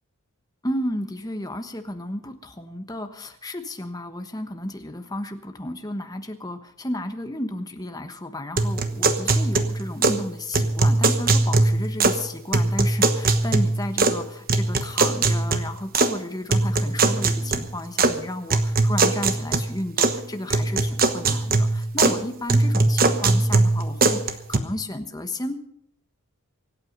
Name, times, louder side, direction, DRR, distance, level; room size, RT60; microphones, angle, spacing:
voice 1, 0.6-25.6, left 1 dB, 15° left, 7 dB, 1.2 m, -33 dB
sound 1, 8.6-10.2 10.5-12.2 12.5-14.2 14.5-16.1 16.5-18.1 18.5-20.2 20.5-22.2 22.5-24.6, right 3 dB, 40° right, 1.1 m, -21 dB
24.5 x 9.0 x 5.4 m, 0.69 s
head